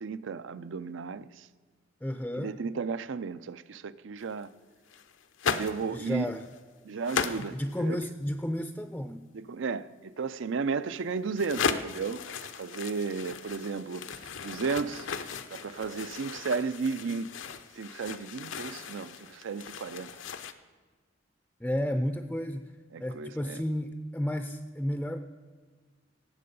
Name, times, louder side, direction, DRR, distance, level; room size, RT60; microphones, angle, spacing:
voice 1, 0.0-1.5 2.4-4.5 5.4-6.3 6.8-8.0 9.3-12.2 12.6-17.3 17.8-20.1 22.9-23.6, right 5 dB, 75° right, 0.5 m, -34 dB
voice 2, 2.0-2.6 5.8-6.5 7.3-9.3 21.6-22.7 23.0-25.2, equal, 5° left, 0.4 m, -32 dB
sound 1, 4.2-4.4 4.9-5.9 6.3-6.6 7.0-7.7 11.0-11.1 11.4-20.5, left 6 dB, 85° left, 0.7 m, -36 dB
18.0 x 7.7 x 5.4 m
head